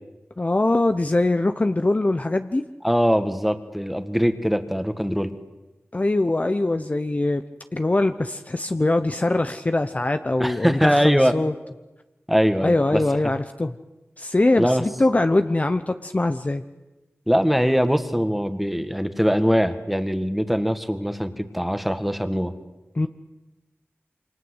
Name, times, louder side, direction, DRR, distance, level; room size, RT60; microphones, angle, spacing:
voice 1, 0.4-2.6 5.9-7.4 7.7-11.5 12.6-13.7 14.2-16.6 22.9-23.1, left 2 dB, 35° left, 8 dB, 1.0 m, -22 dB
voice 2, 2.8-5.4 10.4-11.4 12.3-13.3 14.6-14.9 17.3-22.5, equal, ahead, 9 dB, 1.9 m, -22 dB
28.0 x 25.0 x 8.2 m, 1.1 s
wide cardioid pair, 75°, 5 cm